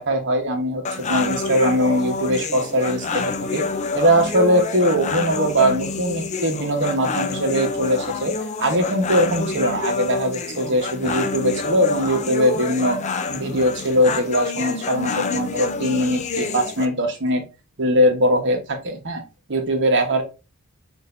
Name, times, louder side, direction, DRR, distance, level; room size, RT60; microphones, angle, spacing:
voice 1, 0.0-3.6 3.9-8.3 8.6-13.0 13.3-17.4 17.8-19.2 19.5-20.2, equal, 60° right, 3 dB, 1.1 m, -21 dB
sound 1, 0.8-16.9, left 4 dB, 35° left, 0.5 m, -27 dB
6.4 x 2.7 x 2.6 m, 0.30 s
head